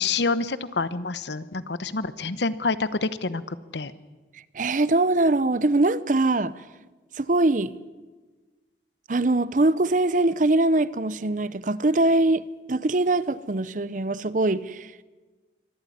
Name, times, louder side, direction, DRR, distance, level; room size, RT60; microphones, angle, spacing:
voice 1, 0.0-3.9, left 4 dB, 75° left, 1.0 m, -27 dB
voice 2, 4.5-6.5 7.2-7.7 9.1-15.0, right 2 dB, 45° right, 0.7 m, -22 dB
24.0 x 13.5 x 9.8 m
head